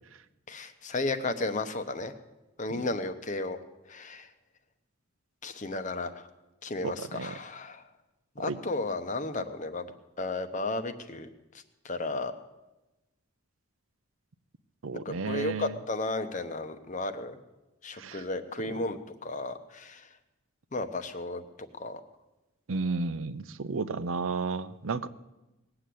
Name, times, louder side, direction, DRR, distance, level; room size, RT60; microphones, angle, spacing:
voice 1, 0.5-2.1 2.6-3.6 3.9-4.3 5.4-6.3 6.6-7.8 8.4-9.9 10.2-11.3 11.8-12.3 14.9-17.4 17.8-19.0 19.2-20.1 20.7-21.4 21.8-22.0, left 2 dB, 35° left, 9 dB, 0.9 m, -33 dB
voice 2, 6.8-7.3 8.5-8.6 14.8-15.8 18.0-18.2 22.7-25.1, right 4 dB, 70° right, 13 dB, 0.6 m, -33 dB
19.0 x 7.8 x 8.4 m, 1.0 s
head